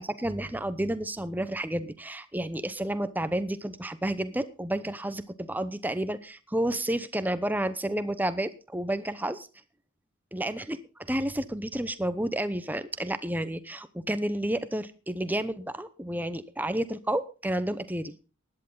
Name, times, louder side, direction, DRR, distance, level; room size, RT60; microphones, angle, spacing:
voice 1, 0.0-9.4 10.3-10.8 11.1-18.2, right 1 dB, 10° right, 13 dB, 0.8 m, -31 dB
16.5 x 11.0 x 4.0 m, 0.34 s
head